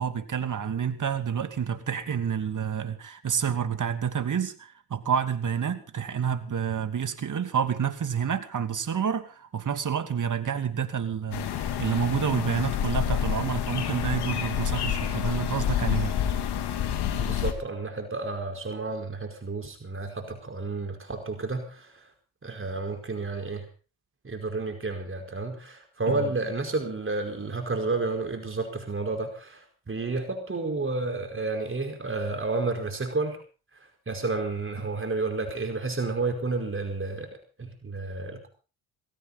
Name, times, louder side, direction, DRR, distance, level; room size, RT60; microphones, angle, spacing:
voice 1, 0.0-16.2 26.1-26.3, right 7 dB, 45° right, 2.6 m, -29 dB
sound 1, 11.3-17.5, left 9 dB, 65° left, 3.0 m, -28 dB
voice 2, 17.2-22.1 22.4-23.7 24.2-33.4 34.1-37.3 37.6-38.5, right 3 dB, 30° right, 5.0 m, -31 dB
20.0 x 17.0 x 4.2 m
supercardioid pair, 60°, 43 cm